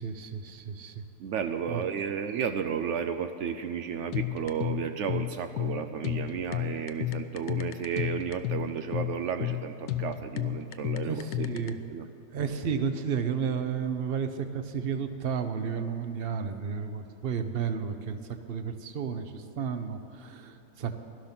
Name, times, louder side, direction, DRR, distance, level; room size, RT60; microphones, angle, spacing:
voice 1, 0.0-1.0 1.7-1.8 11.0-11.8 12.3-18.2 18.5-21.0, right 6 dB, 50° right, 8 dB, 0.7 m, -32 dB
voice 2, 1.2-12.0, right 7 dB, 85° right, 8 dB, 0.6 m, -33 dB
sound 1, 4.1-11.7, left 14 dB, 85° left, 1.3 m, -32 dB
16.5 x 12.0 x 5.9 m, 2.8 s
omnidirectional pair, 1.9 m